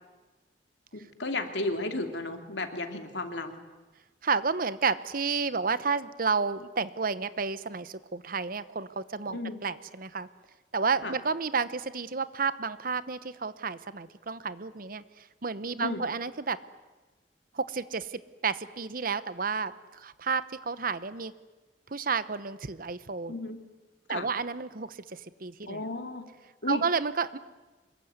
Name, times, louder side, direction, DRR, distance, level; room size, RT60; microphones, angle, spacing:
voice 1, 0.9-3.6 9.3-9.6 11.0-11.2 15.8-16.0 23.3-23.6 24.1-24.3 25.7-26.3 26.6-26.8, left 2 dB, 80° left, 6 dB, 2.6 m, -33 dB
voice 2, 4.2-10.3 10.7-16.6 17.5-21.3 21.9-23.3 24.1-25.8 26.7-27.4, right 5 dB, 50° right, 14 dB, 1.0 m, -31 dB
25.5 x 22.0 x 9.5 m, 1.2 s
head